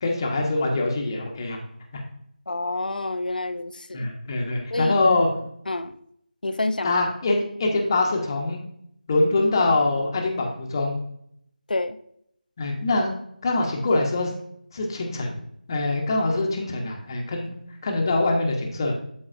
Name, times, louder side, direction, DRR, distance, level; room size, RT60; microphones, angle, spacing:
voice 1, 0.0-1.6 1.9-2.0 3.9-5.3 6.8-8.6 9.1-10.9 12.6-13.1 13.4-14.3 14.7-15.3 15.7-17.5 17.8-18.9, left 2 dB, 25° left, 1 dB, 1.0 m, -24 dB
voice 2, 2.5-4.1 4.7-4.9 5.7-5.9 6.4-6.9 11.7-12.0, left 2 dB, 65° left, 11 dB, 0.6 m, -28 dB
12.0 x 4.0 x 2.6 m, 0.71 s
figure-of-eight pair, 165°, 5 cm